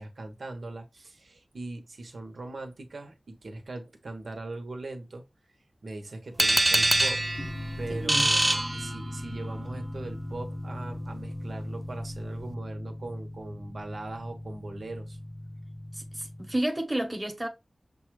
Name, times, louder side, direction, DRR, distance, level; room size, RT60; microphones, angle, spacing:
voice 1, 0.0-5.2 5.8-7.2 7.8-15.2, right 2 dB, 85° right, 1.0 m, -40 dB
sound 1, 6.4-9.4, right 2 dB, 30° right, 0.3 m, -25 dB
sound 2, 6.7-16.6, left 1 dB, 55° left, 0.7 m, -39 dB
voice 2, 7.9-8.3 15.9-17.5, right 1 dB, 15° right, 1.0 m, -31 dB
6.8 x 2.4 x 3.1 m
wide cardioid pair, 80°, 0 cm